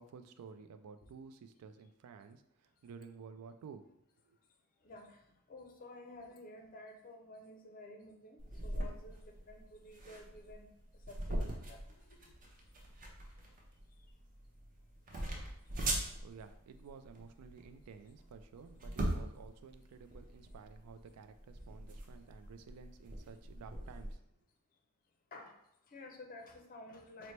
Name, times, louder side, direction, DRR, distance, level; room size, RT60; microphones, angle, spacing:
voice 1, 0.0-3.8 4.2-4.4 16.2-24.2, right 5 dB, 90° right, 9 dB, 0.3 m, -53 dB
voice 2, 4.8-5.2 5.5-12.3 15.1-15.2 25.3-25.6 25.9-27.3, left 2 dB, 40° left, 3 dB, 0.5 m, -53 dB
sound 1, 8.4-24.1, right 1 dB, 40° right, 0.6 m, -42 dB
4.2 x 2.0 x 3.1 m, 0.78 s
head